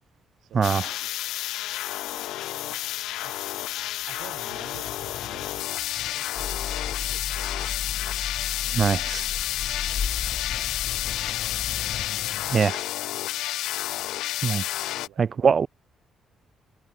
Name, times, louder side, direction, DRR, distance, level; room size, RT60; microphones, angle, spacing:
voice 1, 0.4-1.8 2.1-2.8 3.2-3.4 4.0-7.7 8.7-9.5 9.8-10.1 10.5-11.6 12.8-13.0 13.7-13.8 14.9-15.5, right 14 dB, 85° right, 6.7 m, -52 dB
sound 1, 0.6-15.1, left 15 dB, 90° left, 1.5 m, -30 dB
Sink (filling or washing), 3.8-12.6, left 10 dB, 70° left, 3.0 m, -44 dB
sound 2, 6.3-12.1, left 6 dB, 45° left, 3.4 m, -35 dB
voice 2, 8.7-9.2 12.5-12.8 14.4-14.6 15.2-15.7, right 6 dB, 45° right, 0.6 m, -22 dB
cardioid pair, 90°, 0 cm